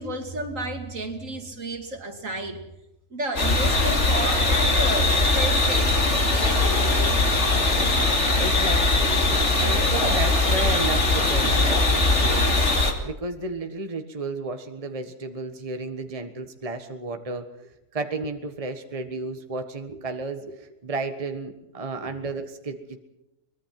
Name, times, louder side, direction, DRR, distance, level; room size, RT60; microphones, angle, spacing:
voice 1, 0.0-2.6 3.1-7.6, right 2 dB, 60° right, 6 dB, 2.9 m, -32 dB
sound 1, 3.4-12.9, left 2 dB, 50° left, 2.9 m, -21 dB
voice 2, 8.3-12.6 13.0-23.0, right 3 dB, 25° right, 6 dB, 1.5 m, -33 dB
23.5 x 21.5 x 5.9 m, 0.91 s
omnidirectional pair, 1.6 m